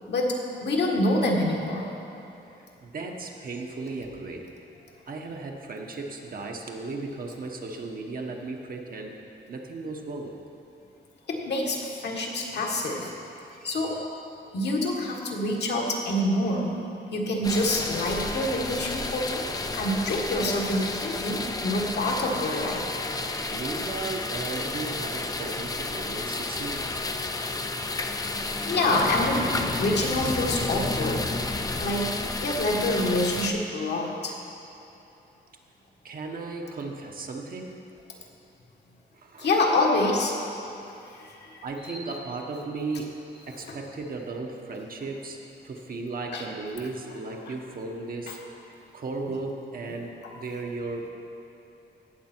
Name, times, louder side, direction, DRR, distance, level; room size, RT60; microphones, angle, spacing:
voice 1, 0.1-1.9 11.3-13.1 13.6-14.0 14.5-16.7 17.1-19.4 19.7-22.9 28.7-31.4 31.8-34.4 39.4-40.4 41.1-42.2 43.7-43.8 46.3-46.5 47.4-47.5 48.3-48.4, left 1 dB, 65° left, -1 dB, 1.6 m, -27 dB
voice 2, 2.8-4.5 5.1-9.2 9.5-10.4 13.5-14.0 23.5-27.0 36.0-37.8 39.1-39.6 41.6-43.2 43.5-48.4 48.9-51.1, right 3 dB, 50° right, 1 dB, 1.1 m, -36 dB
sound 1, 17.4-33.5, left 3 dB, 20° left, 0.5 m, -31 dB
17.5 x 6.7 x 4.5 m, 2.9 s
wide cardioid pair, 140°, 19 cm